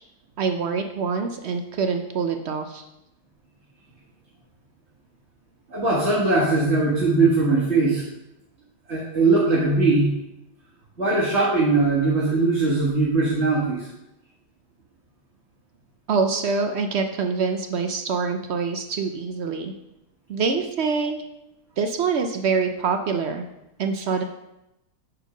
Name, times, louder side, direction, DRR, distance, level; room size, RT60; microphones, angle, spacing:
voice 1, 0.4-2.8 16.1-19.7 20.3-21.2 21.8-23.4 23.8-24.2, right 5 dB, 65° right, 6 dB, 0.6 m, -25 dB
voice 2, 5.7-8.0 8.9-10.2 11.0-13.9, right 3 dB, 40° right, -8 dB, 2.0 m, -20 dB
8.9 x 4.6 x 5.0 m, 0.89 s
omnidirectional pair, 1.8 m